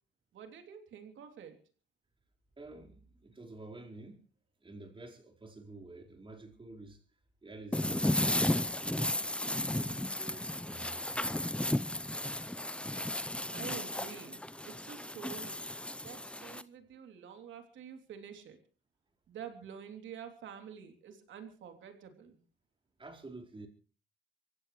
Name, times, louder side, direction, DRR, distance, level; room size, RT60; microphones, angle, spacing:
voice 1, 0.3-1.6 13.4-15.6 16.0-18.6 19.3-22.4, right 8 dB, 70° right, 3.3 m, -48 dB
voice 2, 2.6-4.3 4.6-7.0 7.4-9.2 9.6-11.9 23.0-23.7, right 2 dB, 25° right, 4.6 m, -50 dB
sound 1, 7.7-16.6, left 1 dB, 5° left, 0.7 m, -34 dB
25.0 x 15.5 x 3.3 m
cardioid pair, 90°, 20 cm